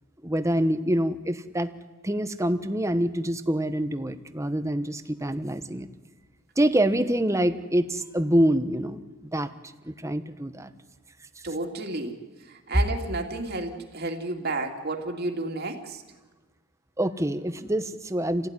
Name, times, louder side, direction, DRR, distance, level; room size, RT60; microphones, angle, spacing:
voice 1, 0.2-1.7 2.0-5.9 6.6-9.5 9.8-10.7 17.0-18.5, right 1 dB, 15° right, 10 dB, 1.0 m, -26 dB
voice 2, 11.4-16.0, right 2 dB, 50° right, 3 dB, 2.7 m, -32 dB
28.0 x 16.5 x 9.9 m, 1.3 s
head